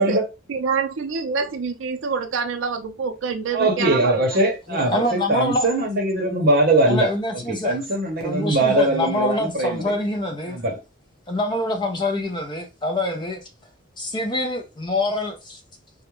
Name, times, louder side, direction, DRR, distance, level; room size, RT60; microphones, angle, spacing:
voice 1, 0.0-4.4, right 5 dB, 75° right, 0.4 m, -26 dB
voice 2, 3.5-7.1 7.5-9.9 10.5-10.8, right 2 dB, 45° right, 0.7 m, -21 dB
voice 3, 4.7-5.7 6.9-7.8 8.2-10.6 11.3-13.4 14.0-15.6, left 2 dB, 20° left, 0.4 m, -25 dB
2.3 x 2.1 x 3.0 m
head